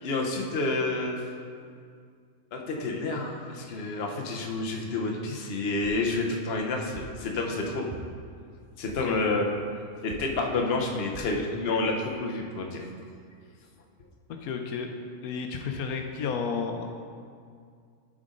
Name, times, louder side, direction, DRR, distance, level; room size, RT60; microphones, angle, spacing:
voice 1, 0.0-1.2 2.5-7.9 8.8-9.5 10.0-12.8, left 3 dB, 50° left, 1 dB, 1.1 m, -29 dB
sound 1, 5.8-6.1 6.9-7.2 7.9-8.3 8.9-9.2 10.1-10.4 11.1-11.4 12.0-12.1 12.4-12.5, right 3 dB, 40° right, 0.6 m, -43 dB
voice 2, 14.4-14.9 15.2-16.9, left 5 dB, 85° left, 4 dB, 1.2 m, -32 dB
12.0 x 5.1 x 3.8 m, 2.2 s
omnidirectional pair, 1.5 m